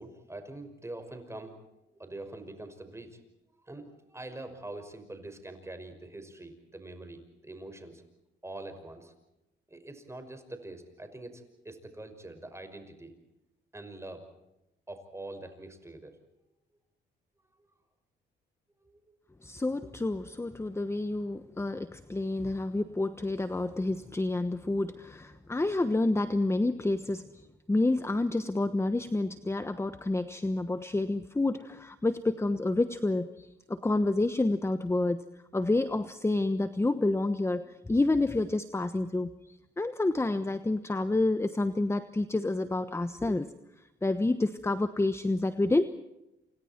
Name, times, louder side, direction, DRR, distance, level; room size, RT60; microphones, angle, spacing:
voice 1, 0.0-1.6 1.9-3.2 3.6-8.0 8.4-9.1 9.7-13.1 13.7-14.4 14.9-16.2 18.8-19.0, right 2 dB, 15° right, 7 dB, 5.8 m, -44 dB
voice 2, 19.4-27.3 27.7-35.2 35.5-39.3 39.8-43.5 44.0-45.8, left 2 dB, 15° left, 11 dB, 1.1 m, -29 dB
29.0 x 28.0 x 4.5 m, 0.91 s
cardioid pair, 90°, 20 cm